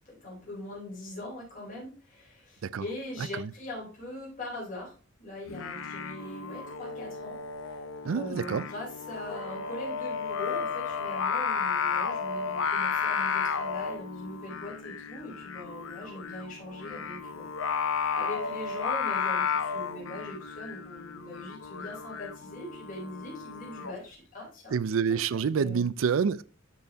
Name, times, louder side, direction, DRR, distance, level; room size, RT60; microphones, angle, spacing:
voice 1, 0.2-1.9 2.8-4.9 5.2-7.3 8.1-17.4 18.1-19.4 19.7-24.0 24.3-24.5 25.1-25.2 25.5-25.9, left 1 dB, 40° left, 3.7 m, -41 dB
Singing, 5.5-24.0, left 6 dB, 85° left, 0.7 m, -33 dB
voice 2, 8.0-8.7 24.7-26.4, right 6 dB, 90° right, 0.4 m, -27 dB
12.0 x 4.2 x 3.5 m
head